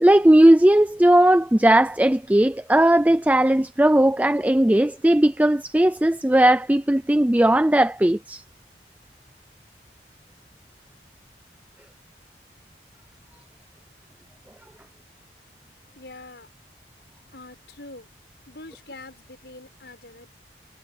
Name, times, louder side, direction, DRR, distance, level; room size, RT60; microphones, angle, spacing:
voice 1, 0.0-8.4, right 1 dB, 10° right, 0.4 m, -17 dB
voice 2, 15.9-16.5 17.3-18.1 18.5-20.3, left 2 dB, 70° left, 6.8 m, -44 dB
head